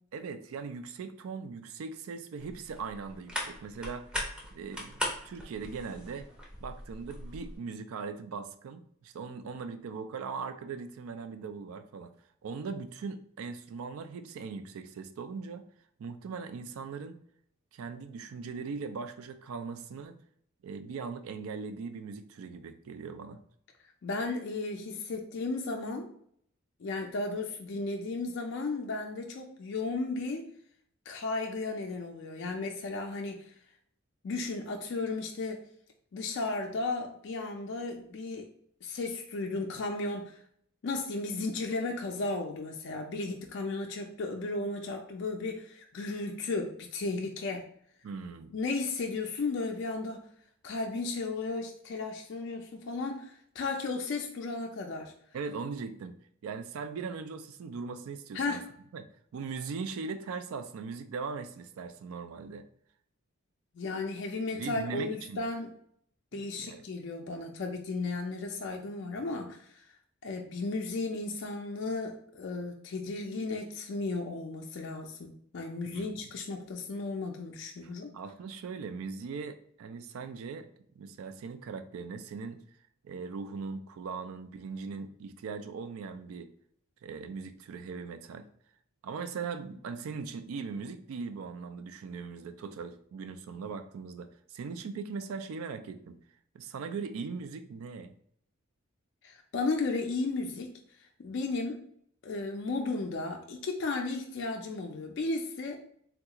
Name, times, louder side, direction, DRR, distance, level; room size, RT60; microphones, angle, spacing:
voice 1, 0.1-4.1 4.5-5.0 5.2-6.3 6.6-12.1 12.4-15.7 16.0-17.2 17.7-20.2 20.6-23.4 48.0-48.5 55.3-58.6 58.9-59.1 59.3-62.6 64.5-65.4 66.3-66.9 75.9-76.3 77.8-80.7 80.9-82.6 83.0-86.5 87.0-88.5 89.0-96.2 96.5-98.1, right 5 dB, 75° right, 9 dB, 0.3 m, -40 dB
sound 1, 2.4-7.6, left 1 dB, 5° right, 0.5 m, -39 dB
voice 2, 24.0-26.1 26.8-30.5 31.1-33.5 34.2-35.6 36.1-38.5 38.8-40.4 40.8-47.6 48.5-50.2 50.6-55.1 58.3-58.6 63.8-65.7 66.3-69.7 70.2-78.1 99.2-100.7 101.2-101.8 102.2-105.8, left 3 dB, 55° left, 2 dB, 0.4 m, -34 dB
3.5 x 2.3 x 2.8 m, 0.66 s
head